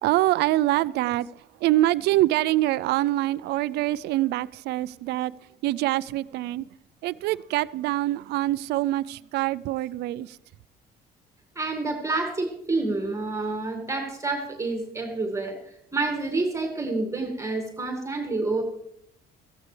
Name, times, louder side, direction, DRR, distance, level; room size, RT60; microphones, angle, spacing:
voice 1, 0.0-1.3 1.6-5.3 5.6-6.7 7.0-10.4, right 16 dB, 80° right, 0.4 m, -25 dB
voice 2, 11.6-18.6, right 3 dB, 15° right, 2.1 m, -28 dB
15.5 x 15.0 x 3.3 m
cardioid pair, 110°, 17 cm